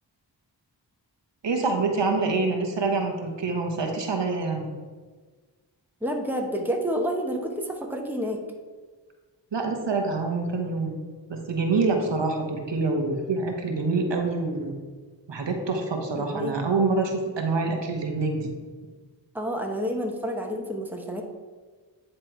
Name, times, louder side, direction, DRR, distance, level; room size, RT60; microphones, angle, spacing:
voice 1, 1.4-4.7 9.5-10.9 11.3-14.7 15.3-18.5, right 3 dB, 70° right, 3 dB, 1.1 m, -26 dB
voice 2, 6.0-8.4 16.2-16.5 19.3-21.2, equal, 5° right, 2 dB, 1.1 m, -29 dB
9.7 x 3.3 x 4.5 m, 1.4 s
cardioid pair, 40°, 45 cm